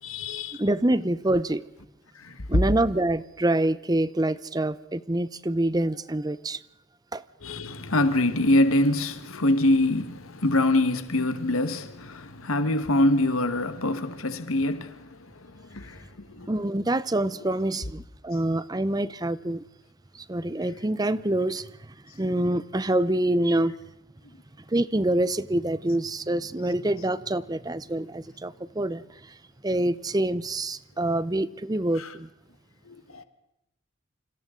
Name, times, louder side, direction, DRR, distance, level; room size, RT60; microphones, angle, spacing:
voice 1, 0.0-0.6 2.1-2.6 7.4-16.5 31.9-32.1 32.8-33.2, left 1 dB, 90° left, 1.5 m, -25 dB
voice 2, 0.6-1.6 2.5-6.6 7.1-7.2 16.5-19.6 20.1-23.7 24.7-29.3 29.6-32.3, right 1 dB, 20° right, 0.7 m, -26 dB
29.0 x 26.5 x 3.8 m
head